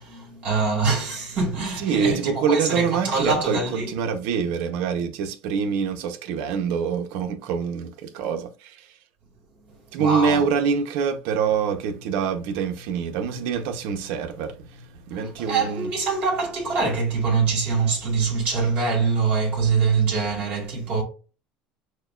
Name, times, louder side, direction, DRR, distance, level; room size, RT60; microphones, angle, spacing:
voice 1, 0.0-3.9 9.7-10.4 15.1-21.0, right 4 dB, 55° right, 2.1 m, -24 dB
voice 2, 1.8-8.9 9.9-15.9, right 6 dB, 75° right, 0.8 m, -25 dB
6.4 x 2.3 x 2.4 m
cardioid pair, 125°, 3 cm